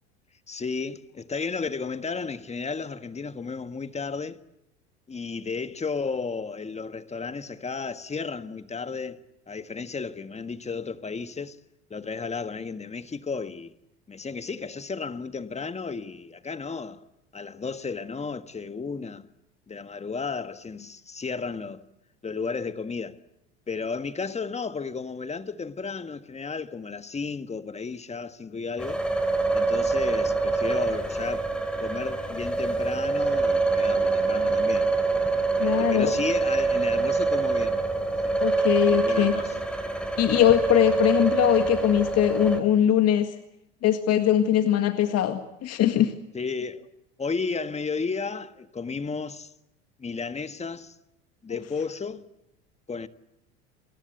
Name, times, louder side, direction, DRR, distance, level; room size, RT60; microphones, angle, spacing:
voice 1, 0.5-4.4 5.1-9.2 9.5-11.6 11.9-13.7 14.1-17.0 17.3-19.3 19.7-21.8 22.2-23.2 23.7-29.0 29.5-31.5 31.8-34.9 35.6-37.8 38.2-38.4 38.8-39.5 46.3-46.9 47.2-49.5 50.0-50.9 51.4-52.2 52.9-53.1, left 4 dB, 20° left, 1.6 m, -33 dB
sound 1, 28.8-42.6, right 3 dB, 5° left, 4.3 m, -25 dB
voice 2, 35.6-36.1 38.4-39.3 40.2-43.3 43.8-46.1 51.5-51.6, left 11 dB, 45° left, 1.9 m, -21 dB
29.0 x 21.0 x 8.2 m
hypercardioid pair, 80°, 34 cm